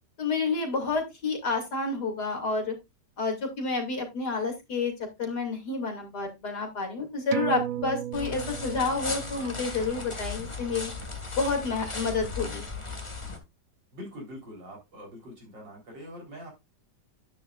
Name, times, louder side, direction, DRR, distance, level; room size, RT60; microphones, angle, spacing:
voice 1, 0.2-2.7 3.2-4.9 5.2-10.9 11.4-12.6, left 4 dB, 60° left, 2 dB, 3.2 m, -29 dB
sound 1, 7.3-12.3 12.6-12.7, right 12 dB, 60° right, 1.0 m, -37 dB
sound 2, 8.1-13.4, left 3 dB, 15° left, 1.7 m, -36 dB
voice 2, 13.9-16.5, equal, 80° right, -1 dB, 4.6 m, -43 dB
10.0 x 9.4 x 2.5 m, 0.22 s
omnidirectional pair, 1.9 m